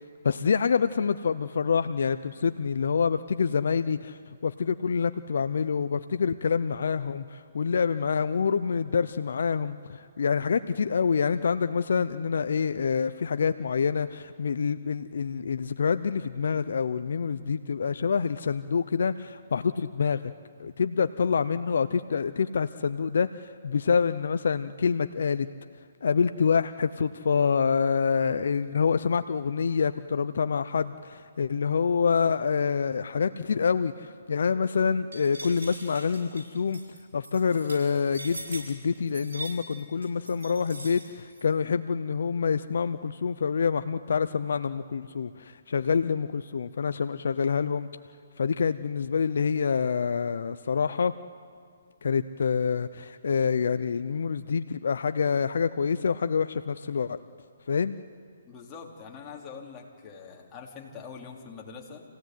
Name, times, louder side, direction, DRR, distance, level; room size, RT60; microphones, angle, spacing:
voice 1, 0.2-20.3 20.6-25.5 26.0-36.8 37.1-47.9 48.4-51.1 52.0-57.2 57.7-58.0, left 6 dB, 70° left, 11 dB, 0.7 m, -26 dB
sound 1, 35.1-41.4, right 2 dB, 80° right, 7.5 m, -42 dB
voice 2, 58.5-62.0, left 5 dB, 20° left, -1 dB, 3.3 m, -44 dB
27.5 x 17.0 x 9.3 m, 2.2 s
hypercardioid pair, 145°, 0 cm